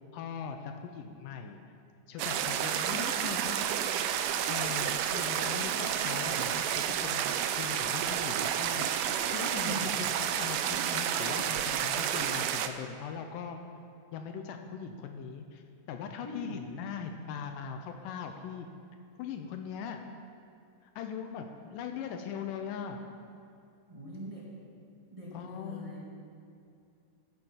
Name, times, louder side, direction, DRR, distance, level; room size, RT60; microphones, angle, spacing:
voice 1, 0.1-1.6 2.1-3.6 4.5-8.9 9.3-13.6 14.1-15.6 15.9-18.7 19.2-20.0 20.8-23.0 25.3-25.9, left 6 dB, 80° left, 5 dB, 2.2 m, -40 dB
sound 1, 2.2-12.7, right 9 dB, 90° right, 1.6 m, -30 dB
voice 2, 16.2-16.6 23.9-24.5 25.1-26.1, right 1 dB, 15° right, -6 dB, 1.3 m, -41 dB
14.0 x 7.0 x 5.6 m, 2.5 s
omnidirectional pair, 3.8 m